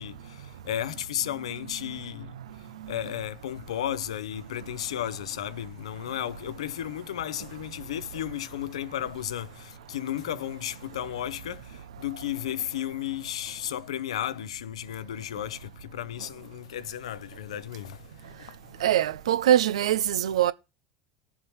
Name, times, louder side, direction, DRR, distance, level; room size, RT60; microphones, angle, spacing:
voice 1, 0.0-2.3 2.9-18.0 18.4-18.5, left 11 dB, 80° left, 0.6 m, -34 dB
voice 2, 18.8-20.5, right 11 dB, 80° right, 0.5 m, -23 dB
19.5 x 7.3 x 3.0 m
hypercardioid pair, 80°, 3 cm